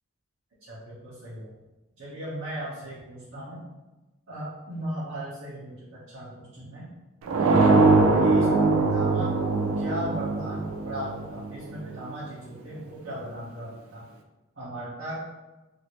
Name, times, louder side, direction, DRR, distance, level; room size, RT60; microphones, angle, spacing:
voice 1, 0.7-1.5 2.0-3.6 4.3-6.8 7.4-7.7 8.2-14.0 14.5-15.2, right 1 dB, 65° right, -12 dB, 1.0 m, -37 dB
sound 1, 7.3-12.0, right 3 dB, 80° right, 0.4 m, -22 dB
2.8 x 2.6 x 3.0 m, 1.1 s
head